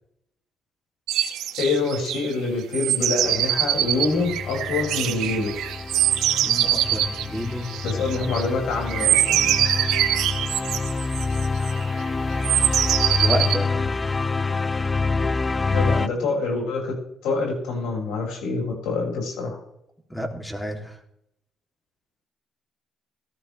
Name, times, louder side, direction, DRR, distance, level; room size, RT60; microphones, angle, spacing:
sound 1, 1.1-2.3 2.7-8.5 8.9-11.8 12.4-13.6, right 12 dB, 90° right, 0.9 m, -23 dB
voice 1, 1.6-5.5 7.8-9.6 15.7-16.9 17.2-19.6, left 3 dB, 90° left, -1 dB, 7.1 m, -26 dB
sound 2, 3.2-16.1, left 4 dB, 25° left, 0.5 m, -27 dB
voice 2, 6.4-7.7 13.1-13.9 20.1-21.0, equal, 5° left, 2 dB, 3.5 m, -30 dB
17.5 x 13.5 x 3.6 m, 0.77 s
cardioid pair, 90°, 0 cm